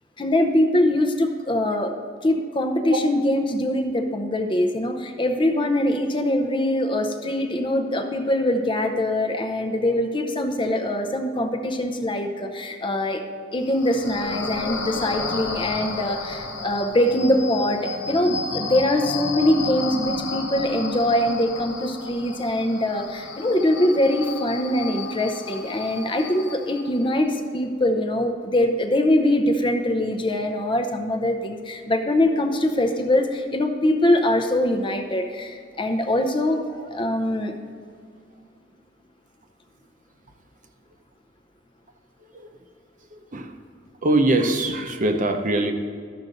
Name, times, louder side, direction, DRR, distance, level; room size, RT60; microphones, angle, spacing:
voice 1, 0.2-2.0 2.2-13.2 13.5-37.5, left 1 dB, 25° left, 5 dB, 0.6 m, -23 dB
sound 1, 13.6-27.0, left 3 dB, 80° left, 1.0 m, -32 dB
voice 2, 44.0-45.7, right 2 dB, 45° right, 5 dB, 0.7 m, -21 dB
13.0 x 6.2 x 3.9 m, 2.1 s
head